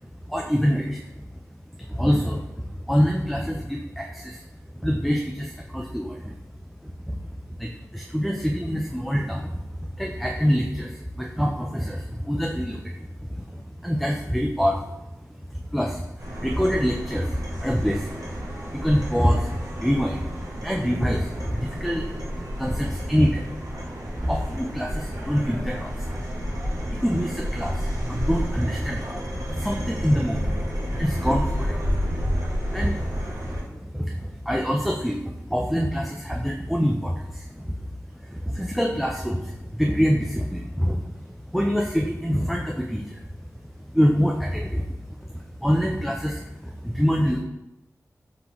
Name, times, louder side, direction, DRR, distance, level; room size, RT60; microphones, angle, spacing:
voice 1, 0.3-1.2 1.9-2.4 2.9-4.4 4.8-6.3 7.1-7.2 7.6-9.6 10.0-13.1 13.4-14.9 15.5-16.1 16.4-18.4 18.7-20.3 20.6-22.3 22.6-23.5 24.0-26.1 26.5-26.6 26.9-29.3 29.5-30.6 30.9-31.9 32.7-37.7 38.2-41.0 41.5-43.2 43.9-44.8 45.3-47.4, equal, ahead, 0 dB, 0.3 m, -25 dB
sound 1, 16.2-33.6, equal, 70° right, 1.0 m, -31 dB
3.8 x 3.7 x 2.9 m, 0.93 s
wide cardioid pair, 105°, 6 cm